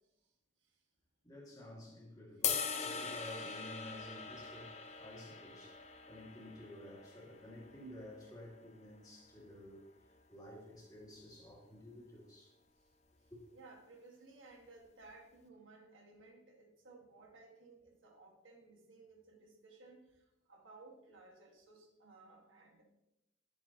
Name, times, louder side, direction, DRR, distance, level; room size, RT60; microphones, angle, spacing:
voice 1, 1.2-12.5 13.3-13.4, left 1 dB, 20° left, 2.0 m, -52 dB
sound 1, 2.4-8.7, left 7 dB, 35° left, 0.6 m, -42 dB
voice 2, 2.7-3.2 4.9-5.0 12.8-12.9 13.2-22.8, right 3 dB, 90° right, 1.7 m, -59 dB
10.0 x 7.4 x 2.9 m
head